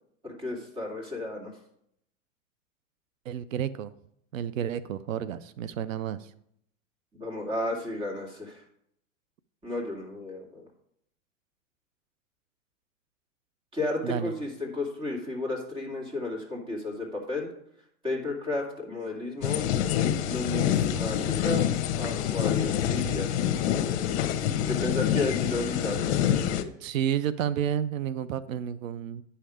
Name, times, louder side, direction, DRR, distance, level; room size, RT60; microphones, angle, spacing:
voice 1, 0.2-1.5 7.1-8.6 9.6-10.6 13.7-17.5 18.0-19.6 20.2-21.7 22.0-23.5 24.7-26.5, left 2 dB, 15° right, -1 dB, 2.2 m, -33 dB
voice 2, 3.3-3.9 4.3-6.3 14.0-14.3 26.8-29.2, right 9 dB, 90° right, 16 dB, 0.6 m, -31 dB
sound 1, 19.4-26.6, left 10 dB, 60° left, 1.0 m, -26 dB
9.7 x 5.7 x 4.9 m, 0.72 s
supercardioid pair, 145°, 39 cm